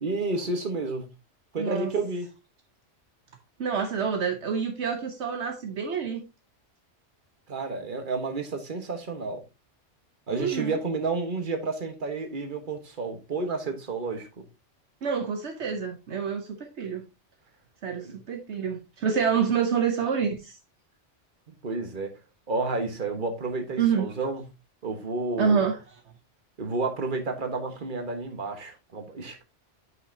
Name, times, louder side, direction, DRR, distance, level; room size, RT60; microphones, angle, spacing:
voice 1, 0.0-1.1 1.5-2.3 7.5-9.4 10.3-14.3 18.0-18.2 21.5-22.1 22.5-24.4 24.8-25.7 26.6-29.4, right 3 dB, 45° right, 1.5 m, -31 dB
voice 2, 1.6-1.9 3.6-6.2 10.3-10.8 15.0-17.1 17.8-20.6 23.8-24.1 25.4-25.8, right 6 dB, 70° right, 1.2 m, -27 dB
9.5 x 5.7 x 2.8 m
omnidirectional pair, 1.2 m